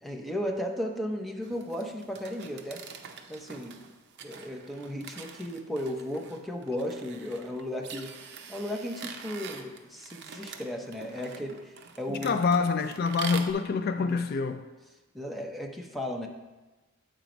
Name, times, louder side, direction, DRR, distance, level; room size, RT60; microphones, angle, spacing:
voice 1, 0.0-2.8 3.3-3.8 4.2-8.1 8.5-12.4 14.0-14.2 15.1-16.3, equal, ahead, 0.7 m, -35 dB
sound 1, 1.4-13.5, right 6 dB, 55° right, 0.6 m, -44 dB
voice 2, 12.2-14.6, left 5 dB, 50° left, 0.3 m, -26 dB
7.8 x 4.5 x 5.1 m
head